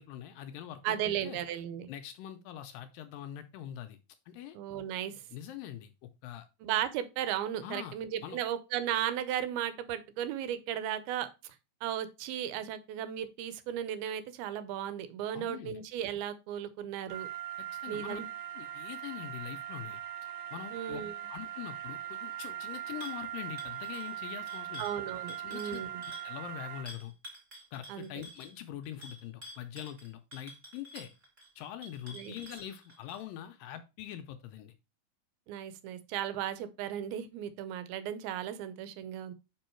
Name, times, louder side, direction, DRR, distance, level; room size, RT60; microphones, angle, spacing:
voice 1, 0.0-1.0 1.2-1.4 1.9-4.0 4.3-4.6 5.3-5.9 6.2-6.5 7.6-8.0 8.2-8.4 15.3-15.8 17.6-18.2 18.6-20.0 20.5-21.0 21.3-24.8 25.4-27.1 27.7-31.1 31.6-34.7, left 11 dB, 80° left, 2.1 m, -43 dB
voice 2, 0.8-1.9 4.5-5.2 6.6-11.6 11.8-17.3 17.9-18.3 20.7-21.1 24.8-26.0 27.9-28.1 32.1-32.3 35.5-39.3, right 10 dB, 85° right, 2.6 m, -35 dB
sound 1, 17.1-26.8, right 11 dB, 45° right, 1.4 m, -40 dB
sound 2, 23.0-23.2 23.6-26.3 26.8-33.2, left 1 dB, 25° right, 1.9 m, -50 dB
5.4 x 5.3 x 4.4 m
omnidirectional pair, 4.3 m